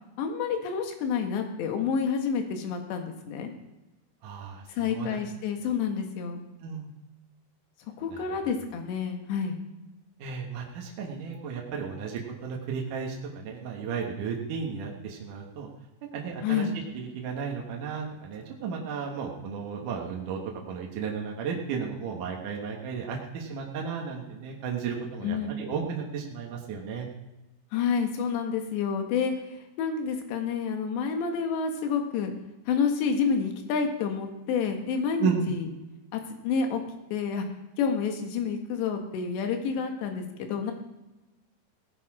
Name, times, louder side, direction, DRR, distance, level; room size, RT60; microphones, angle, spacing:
voice 1, 0.2-3.5 4.7-6.4 8.0-9.6 16.4-16.7 25.2-25.5 27.7-29.3 29.8-32.3 32.7-35.7 36.1-36.8 37.1-37.5 37.8-40.7, left 6 dB, 75° left, 4 dB, 3.8 m, -29 dB
voice 2, 4.2-5.2 6.6-6.9 8.1-8.2 10.2-15.7 16.1-20.4 20.7-27.1 35.2-35.5, right 6 dB, 60° right, -1 dB, 2.6 m, -34 dB
18.0 x 10.0 x 4.9 m, 1.1 s
omnidirectional pair, 5.1 m